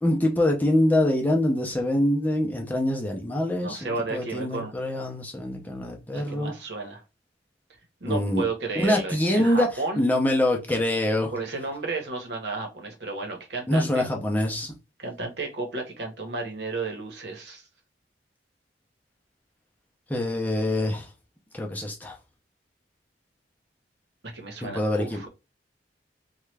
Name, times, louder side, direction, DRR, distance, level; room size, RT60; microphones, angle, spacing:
voice 1, 0.0-6.5 8.1-8.4 8.8-9.7 10.0-11.3 13.7-14.7 20.1-21.1 21.5-22.2 24.6-25.2, left 1 dB, 10° left, 0.6 m, -24 dB
voice 2, 3.6-4.7 6.1-7.0 8.0-10.0 11.3-14.0 15.0-17.7 24.3-25.3, right 3 dB, 70° right, 1.0 m, -33 dB
3.0 x 2.3 x 3.2 m
head